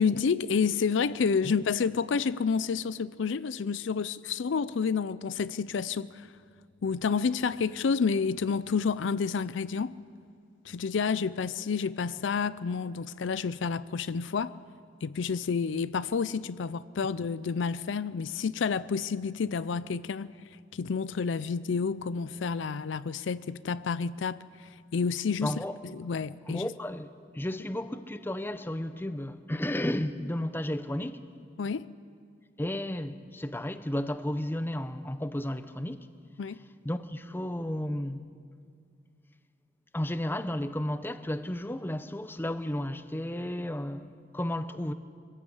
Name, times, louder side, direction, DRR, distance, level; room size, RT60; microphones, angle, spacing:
voice 1, 0.0-6.3 6.8-10.0 10.6-14.5 15.0-20.3 20.7-25.5 25.8-26.7 31.6-31.9 36.4-36.6, left 5 dB, 70° left, 0.4 m, -29 dB
voice 2, 25.4-25.8 26.5-27.1 27.3-31.2 32.6-36.1 36.8-38.3 39.9-44.9, left 1 dB, 10° left, 0.7 m, -33 dB
22.5 x 15.5 x 8.1 m
head